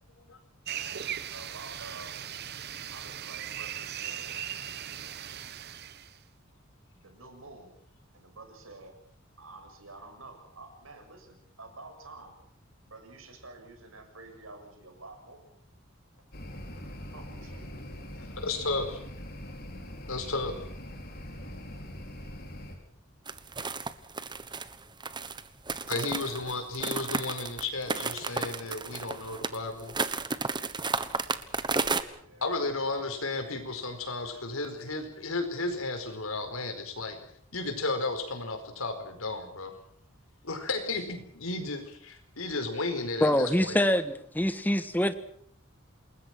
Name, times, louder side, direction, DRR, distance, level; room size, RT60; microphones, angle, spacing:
sound 1, 0.7-6.2, right 10 dB, 50° right, 1.0 m, -38 dB
voice 1, 0.7-2.2 2.9-4.4 7.0-7.7 8.1-8.9 9.4-12.4 12.8-15.5 17.1-17.9 18.1-18.3 25.9-26.6 32.1-33.1, right 2 dB, 80° right, 7.1 m, -49 dB
sound 2, 16.3-22.8, equal, 50° left, 5.1 m, -42 dB
voice 2, 18.4-19.0 20.1-20.5 25.9-30.0 32.4-37.2 37.5-39.7 40.4-43.8, left 3 dB, 85° left, 4.9 m, -33 dB
sound 3, 23.3-32.0, right 4 dB, 20° right, 1.2 m, -32 dB
voice 3, 43.2-45.1, left 1 dB, 10° left, 1.4 m, -25 dB
28.5 x 20.5 x 6.2 m
head